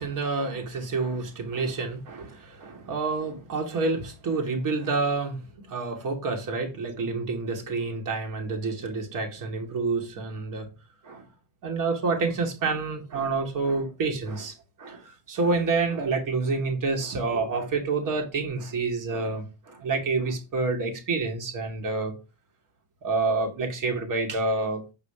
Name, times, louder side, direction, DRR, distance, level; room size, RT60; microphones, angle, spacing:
voice 1, 0.0-10.7 11.0-11.2 11.6-22.1 23.0-24.8, right 3 dB, 45° right, 2.7 m, -28 dB
7.6 x 4.8 x 5.0 m
cardioid pair, 110°, 43 cm